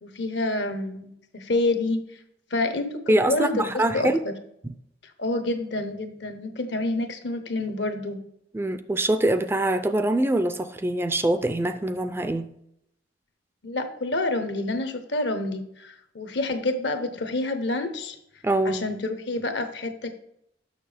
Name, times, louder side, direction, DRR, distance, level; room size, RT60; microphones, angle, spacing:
voice 1, 0.0-2.0 2.5-4.3 5.2-8.2 13.6-18.2 18.6-20.1, left 2 dB, 70° left, 8 dB, 0.9 m, -28 dB
voice 2, 3.1-4.2 8.5-12.5 18.4-18.8, right 1 dB, 15° right, 10 dB, 0.3 m, -24 dB
6.5 x 6.3 x 3.4 m, 0.76 s
head